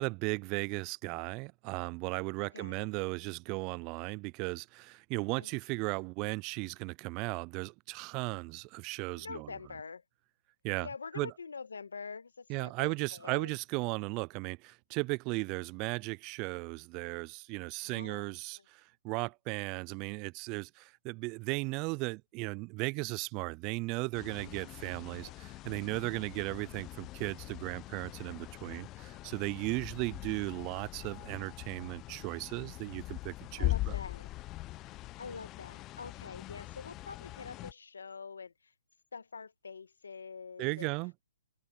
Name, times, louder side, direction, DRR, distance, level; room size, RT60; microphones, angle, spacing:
voice 1, 0.0-9.5 10.6-10.9 11.1-11.3 12.5-34.0 40.6-41.1, right 27 dB, 30° right, 0.3 m, -36 dB
voice 2, 2.4-3.1 5.3-5.5 9.1-10.0 10.8-13.6 17.8-18.3 18.5-18.6 25.2-25.3 25.6-25.7 29.7-29.8 33.6-34.3 35.2-38.7 39.1-40.9, left 5 dB, 85° left, 1.5 m, -45 dB
sound 1, 24.1-37.7, left 18 dB, 25° left, 0.7 m, -41 dB
open air
hypercardioid pair, 140°, 0 cm